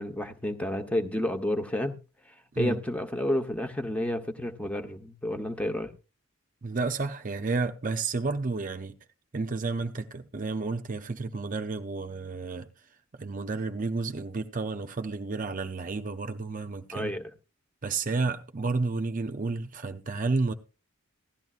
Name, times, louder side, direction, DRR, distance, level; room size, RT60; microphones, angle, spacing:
voice 1, 0.0-2.0 2.6-5.9 16.9-17.3, left 1 dB, 5° left, 0.9 m, -30 dB
voice 2, 6.6-8.9 9.3-12.7 13.2-17.1 17.8-20.5, right 3 dB, 40° right, 0.6 m, -31 dB
16.5 x 12.5 x 2.4 m
head